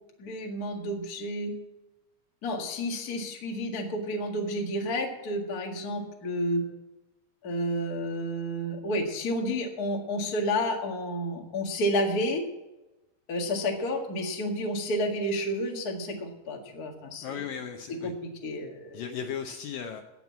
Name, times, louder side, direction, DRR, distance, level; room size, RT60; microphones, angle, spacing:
voice 1, 0.2-1.5 2.4-6.6 7.4-12.4 13.3-17.5 17.9-18.1 18.4-19.1, equal, 40° left, 1 dB, 1.4 m, -30 dB
voice 2, 17.2-18.1 18.9-20.0, left 8 dB, 75° left, 5 dB, 2.2 m, -36 dB
16.5 x 6.0 x 8.3 m, 1.0 s
omnidirectional pair, 4.5 m